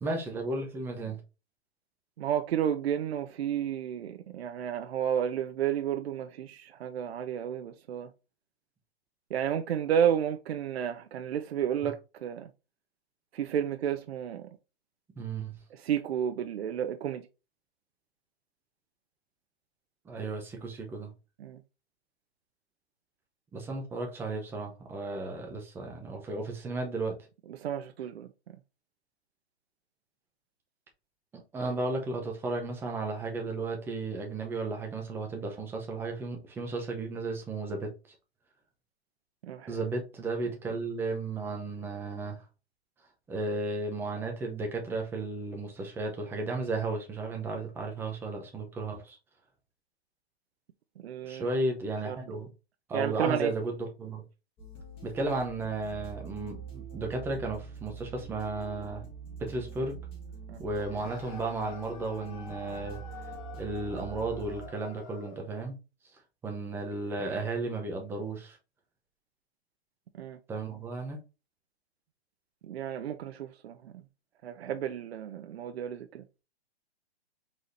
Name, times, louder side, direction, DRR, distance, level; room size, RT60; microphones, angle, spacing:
voice 1, 0.0-1.2 15.2-15.6 20.0-21.1 23.5-27.2 31.5-37.9 39.7-42.4 43.3-49.2 51.2-52.5 52.9-54.2 55.0-59.0 59.4-60.0 60.6-63.0 63.6-65.7 66.4-68.6 70.5-71.2, right 3 dB, 5° right, 0.7 m, -34 dB
voice 2, 2.2-8.1 9.3-12.5 13.3-14.5 15.7-17.2 21.4-21.6 27.6-28.3 39.4-39.8 51.0-51.5 52.1-52.2 52.9-53.5 60.5-60.6 70.2-70.4 72.6-73.9 74.4-76.2, right 9 dB, 70° right, 0.6 m, -31 dB
sound 1, 54.6-64.7, right 5 dB, 15° left, 1.4 m, -44 dB
sound 2, 60.7-65.5, left 5 dB, 45° left, 1.2 m, -48 dB
4.9 x 4.2 x 2.6 m
hypercardioid pair, 155°, 32 cm